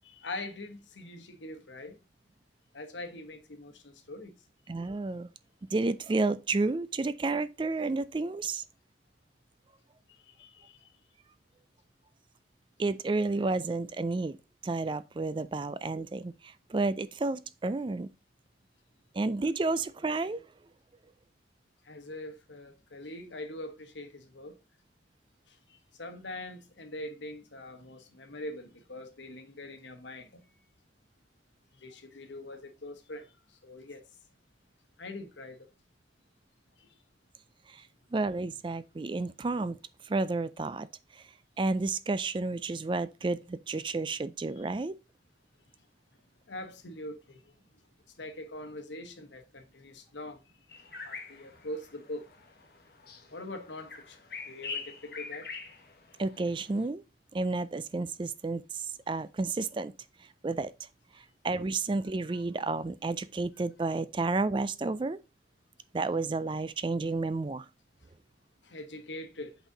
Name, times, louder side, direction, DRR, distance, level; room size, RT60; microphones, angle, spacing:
voice 1, 0.0-2.0 2.7-4.4 10.1-10.9 21.8-24.5 25.5-30.4 31.8-33.3 33.6-34.0 35.0-35.7 36.8-36.9 44.6-44.7 46.5-47.5 48.2-50.4 51.0-52.3 53.3-54.2 54.4-55.5 62.3-62.4 68.6-69.6, left 1 dB, 85° left, 1.2 m, -43 dB
voice 2, 4.7-5.3 5.7-8.6 12.8-14.4 14.6-18.1 19.1-20.4 37.7-37.8 38.1-39.8 40.0-40.9 41.1-41.2 41.6-45.0 56.2-57.0 57.3-59.9 60.4-60.7 61.4-65.2 65.9-67.7, right 3 dB, 25° right, 0.3 m, -31 dB
sound 1, 50.7-56.9, left 5 dB, 55° left, 1.2 m, -44 dB
8.0 x 4.1 x 3.8 m
head